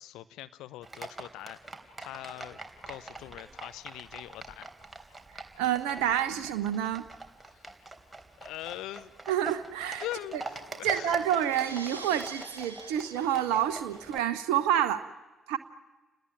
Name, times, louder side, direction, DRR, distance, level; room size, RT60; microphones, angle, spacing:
voice 1, 0.0-1.6 2.0-4.7 7.5-7.7 8.4-9.1 10.0-11.3, left 15 dB, 65° left, 13 dB, 0.9 m, -42 dB
Livestock farm animals working animals, 0.8-14.2, right 2 dB, 15° right, 3.5 m, -44 dB
voice 2, 5.3-7.0 9.3-10.0 10.8-15.1 15.5-15.6, right 10 dB, 65° right, 11 dB, 1.0 m, -28 dB
sound 1, 9.7-14.4, right 2 dB, 85° right, 1.3 m, -47 dB
30.0 x 19.5 x 9.3 m, 1.1 s
figure-of-eight pair, 40°, 0 cm